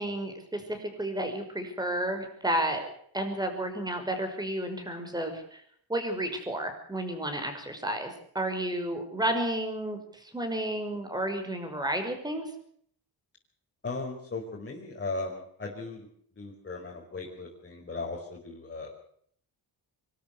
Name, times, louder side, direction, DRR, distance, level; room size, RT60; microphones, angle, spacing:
voice 1, 0.0-5.6 5.9-12.5, right 1 dB, 10° right, 6 dB, 5.8 m, -32 dB
voice 2, 13.8-16.1 16.3-19.0, left 3 dB, 30° left, -2 dB, 5.1 m, -37 dB
24.5 x 13.5 x 8.3 m, 0.64 s
cardioid pair, 110°, 40 cm